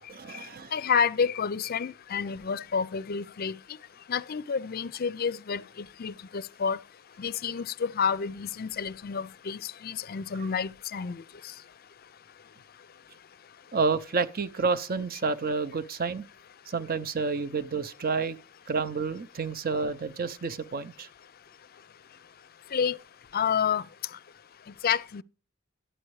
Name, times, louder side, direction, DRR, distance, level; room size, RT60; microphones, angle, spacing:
voice 1, 0.1-0.7 13.7-16.2 16.7-18.4 18.7-21.1, right 4 dB, 45° right, 0.7 m, -29 dB
voice 2, 0.7-3.6 4.1-6.8 7.2-11.2 22.7-23.0 23.3-23.8 24.8-25.2, left 6 dB, 50° left, 0.5 m, -29 dB
12.5 x 9.8 x 3.2 m
head